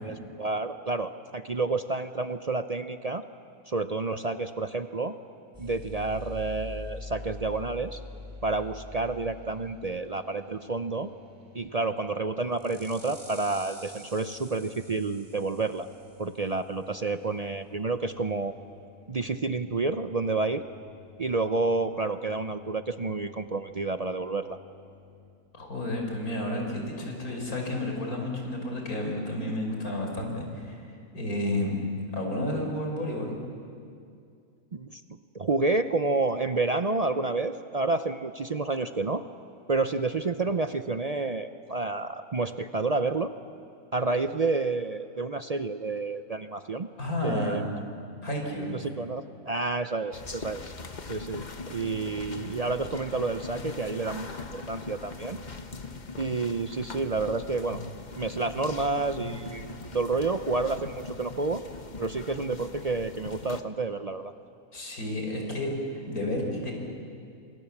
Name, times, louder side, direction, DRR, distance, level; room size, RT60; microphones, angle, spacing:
voice 1, 0.0-3.2 3.7-5.1 5.6-8.0 8.4-11.1 11.5-15.9 16.2-18.5 19.1-20.6 21.2-24.6 34.7-35.0 35.3-39.2 39.7-43.3 43.9-46.9 47.2-47.6 48.7-50.7 51.1-55.4 56.2-57.8 58.2-61.6 62.0-64.3, right 3 dB, 50° right, 9 dB, 0.4 m, -29 dB
sound 1, 5.5-25.3, left 3 dB, 10° right, 3.4 m, -47 dB
voice 2, 25.5-31.7 32.1-33.4 47.0-47.6 48.2-48.8 64.7-66.7, left 1 dB, 65° left, 1 dB, 5.3 m, -31 dB
sound 2, 50.1-63.6, left 4 dB, 30° left, 1.2 m, -41 dB
28.5 x 26.5 x 7.3 m, 2.4 s
omnidirectional pair, 1.6 m